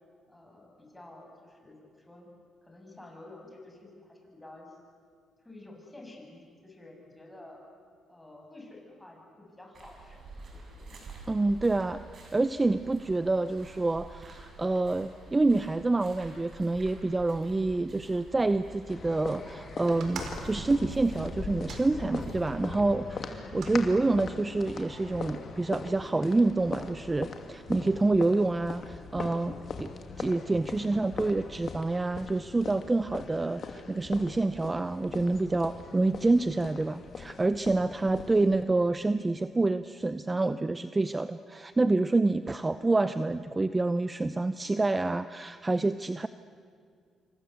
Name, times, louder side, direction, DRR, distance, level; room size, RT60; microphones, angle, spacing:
voice 1, 0.3-2.3 2.6-4.8 5.4-7.6 8.1-10.9 23.3-23.6, left 2 dB, 10° left, 1 dB, 7.6 m, -50 dB
sound 1, 9.7-22.6, right 2 dB, 50° right, 7.0 m, -48 dB
voice 2, 11.3-12.0 12.3-29.9 30.2-46.3, right 2 dB, 20° right, 12 dB, 0.7 m, -27 dB
sound 2, 18.9-38.6, left 5 dB, 50° left, 2.6 m, -41 dB
sound 3, 19.9-22.6 23.3-23.8 24.6-25.2, right 5 dB, 70° right, 4.5 m, -45 dB
27.5 x 25.5 x 8.2 m, 2.1 s
cardioid pair, 90°, 0 cm